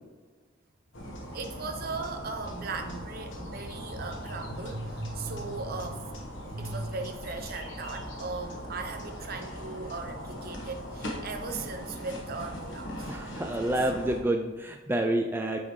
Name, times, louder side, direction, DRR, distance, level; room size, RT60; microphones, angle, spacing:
sound 1, 0.9-14.2, equal, 70° left, 1.2 m, -40 dB
voice 1, 1.3-6.2 6.5-13.2, right 3 dB, 50° right, 6 dB, 0.7 m, -37 dB
voice 2, 13.1-15.6, right 1 dB, 10° right, 2 dB, 0.3 m, -28 dB
8.6 x 3.9 x 3.1 m, 1.3 s
head